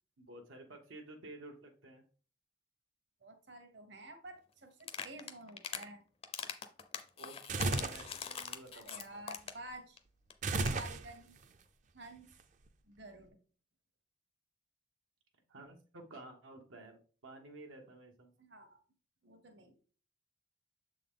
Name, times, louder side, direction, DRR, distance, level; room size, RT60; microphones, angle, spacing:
voice 1, 0.2-2.0 7.2-9.2 15.5-18.3, right 2 dB, 90° right, 2 dB, 1.0 m, -52 dB
voice 2, 3.2-6.0 8.7-10.0 10.7-11.4 11.9-12.3 12.8-13.4 18.4-18.8 19.2-19.8, right 1 dB, 60° right, 5 dB, 1.1 m, -51 dB
sound 1, 4.8-5.9 6.2-9.7 10.0-10.1 10.3-10.4 10.6-10.8, left 7 dB, 30° left, 0.4 m, -42 dB
sound 2, 7.5-8.1 10.4-11.4, right 3 dB, 40° right, 0.4 m, -34 dB
7.0 x 3.8 x 3.6 m, 0.40 s
head